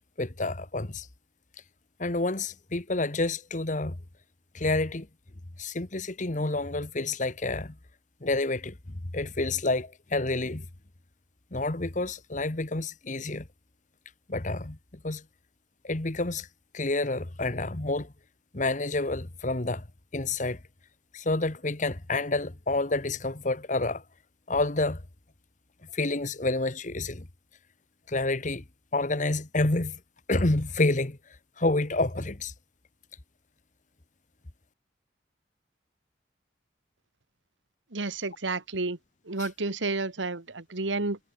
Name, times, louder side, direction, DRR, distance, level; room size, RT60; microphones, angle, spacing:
voice 1, 0.2-1.1 2.0-4.0 4.5-5.1 5.6-7.7 8.2-10.7 11.5-13.5 14.3-14.8 15.0-15.2 15.8-16.5 16.7-18.1 18.5-19.8 20.1-20.6 21.1-24.0 24.5-25.0 25.9-27.3 28.1-28.6 28.9-30.0 30.3-31.2 31.6-32.5 39.4-39.5, left 2 dB, 45° left, 1.4 m, -28 dB
voice 2, 37.9-39.0 39.3-41.2, right 3 dB, 90° right, 1.7 m, -31 dB
head